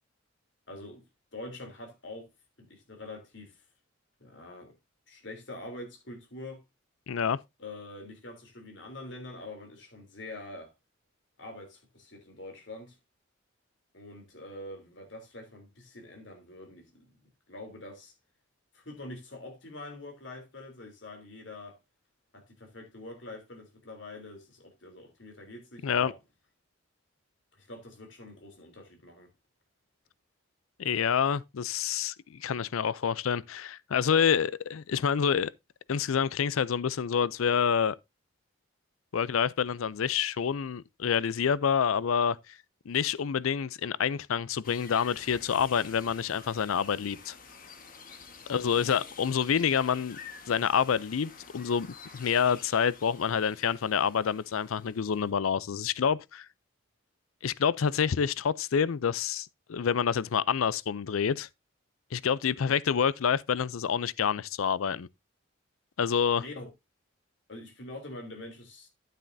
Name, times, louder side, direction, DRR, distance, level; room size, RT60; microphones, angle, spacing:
voice 1, 0.7-1.0 1.3-2.3 2.6-3.6 4.2-4.7 5.1-6.6 7.6-10.7 11.4-13.0 13.9-17.0 17.5-18.1 18.7-21.8 22.3-26.2 27.5-29.3 48.5-49.0 62.5-62.8 66.4-66.7 67.5-68.9, left 2 dB, 60° left, 3.3 m, -45 dB
voice 2, 7.1-7.4 25.8-26.1 30.8-35.5 35.9-38.0 39.1-42.6 42.9-47.4 48.5-50.2 50.5-51.9 52.1-56.5 57.4-61.5 62.1-65.1 66.0-66.4, left 7 dB, 90° left, 0.5 m, -27 dB
sound 1, 44.6-55.3, left 5 dB, 40° left, 1.4 m, -49 dB
10.0 x 9.1 x 2.7 m
head